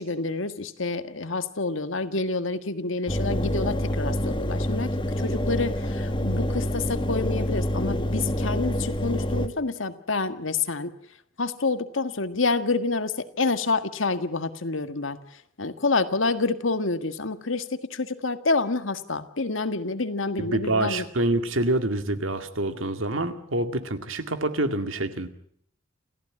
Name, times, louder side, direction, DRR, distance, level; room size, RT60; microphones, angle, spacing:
voice 1, 0.0-10.9 11.4-15.2 15.6-21.0, left 3 dB, 75° left, 10 dB, 1.7 m, -28 dB
Engine, 3.1-9.5, equal, 25° left, 1.6 m, -27 dB
voice 2, 20.4-25.3, right 2 dB, 85° right, 9 dB, 2.2 m, -26 dB
29.0 x 15.0 x 8.9 m, 0.69 s
head